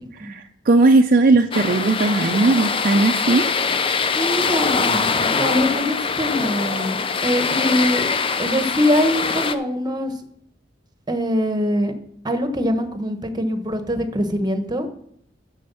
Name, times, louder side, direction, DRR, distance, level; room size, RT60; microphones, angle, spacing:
voice 1, 0.2-3.5, right 3 dB, 50° right, 5 dB, 0.5 m, -17 dB
sound 1, 1.5-9.5, left 5 dB, 30° left, 0.5 m, -23 dB
voice 2, 4.1-8.1 8.4-10.1 11.1-11.9 12.2-14.9, equal, 20° right, 7 dB, 1.1 m, -23 dB
7.8 x 6.4 x 6.9 m, 0.67 s
head